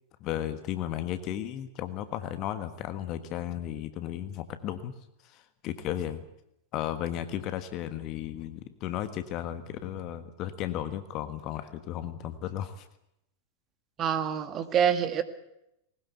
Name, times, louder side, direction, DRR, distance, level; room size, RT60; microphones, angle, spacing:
voice 1, 0.2-4.9 5.2-6.2 6.7-12.9, left 11 dB, 40° left, 10 dB, 1.5 m, -34 dB
voice 2, 14.0-15.2, right 8 dB, 30° right, 10 dB, 2.0 m, -26 dB
20.0 x 19.0 x 8.1 m, 0.83 s
figure-of-eight pair, 90°, 0 cm